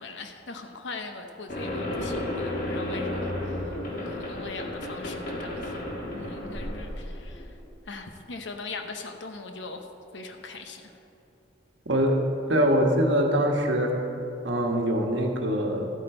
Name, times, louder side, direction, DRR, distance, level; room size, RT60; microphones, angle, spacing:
voice 1, 0.0-5.7 6.1-7.5 7.9-9.9 10.1-10.9, left 3 dB, 75° left, 5 dB, 0.9 m, -40 dB
sound 1, 1.5-7.5, left 1 dB, 45° left, 1.7 m, -32 dB
voice 2, 11.9-12.2 12.5-14.0 14.4-15.9, equal, 75° right, 2 dB, 1.3 m, -23 dB
14.0 x 8.4 x 4.3 m, 3.0 s
head